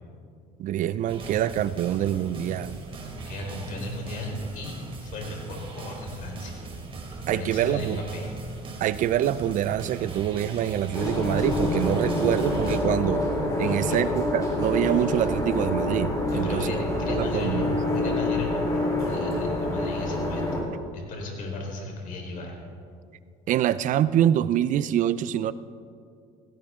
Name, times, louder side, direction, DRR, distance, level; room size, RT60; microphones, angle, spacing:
voice 1, 0.6-2.8 7.3-8.0 8.8-13.3 13.6-16.7 17.1-17.8 23.5-25.5, right 11 dB, 50° right, 16 dB, 0.6 m, -25 dB
sound 1, 1.1-12.8, right 3 dB, 35° right, 3.1 m, -39 dB
voice 2, 3.3-6.6 7.3-8.3 13.6-14.0 16.3-17.6 17.9-20.6 20.9-22.6, left 2 dB, 55° left, 0 dB, 4.1 m, -36 dB
sound 2, 10.9-20.6, left 1 dB, 20° left, 3.7 m, -27 dB
17.0 x 16.0 x 3.7 m, 2.3 s
supercardioid pair, 100°, 16 cm